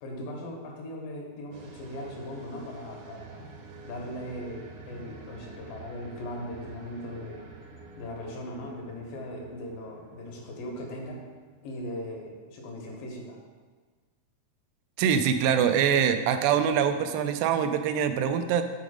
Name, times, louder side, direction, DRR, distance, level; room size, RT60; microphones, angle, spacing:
voice 1, 0.0-3.5 3.8-7.4 8.0-11.3 11.6-13.4, left 1 dB, 85° left, 0 dB, 2.8 m, -39 dB
sound 1, 1.5-12.3, right 3 dB, 75° right, 1.9 m, -49 dB
voice 2, 15.0-18.6, right 8 dB, 90° right, 8 dB, 2.2 m, -24 dB
7.1 x 3.9 x 5.0 m, 1.4 s
omnidirectional pair, 3.9 m